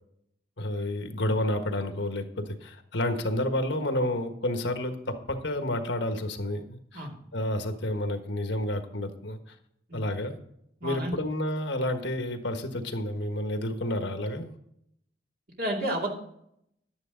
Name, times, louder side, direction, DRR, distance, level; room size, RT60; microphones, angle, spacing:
voice 1, 0.6-9.4 9.9-10.4 10.8-14.5, left 1 dB, 75° left, 6 dB, 1.4 m, -30 dB
voice 2, 10.8-11.2 15.6-16.1, right 1 dB, 50° right, -1 dB, 2.5 m, -30 dB
11.0 x 9.6 x 3.9 m, 0.74 s
head